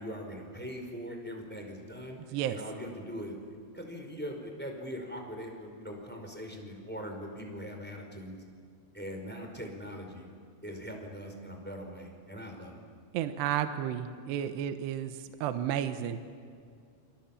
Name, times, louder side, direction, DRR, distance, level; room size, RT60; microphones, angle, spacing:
voice 1, 0.0-8.4 8.9-10.3 10.6-12.8, equal, ahead, 3 dB, 4.3 m, -41 dB
voice 2, 13.1-16.2, right 10 dB, 80° right, 8 dB, 3.1 m, -32 dB
28.5 x 27.0 x 7.3 m, 2.3 s
omnidirectional pair, 5.1 m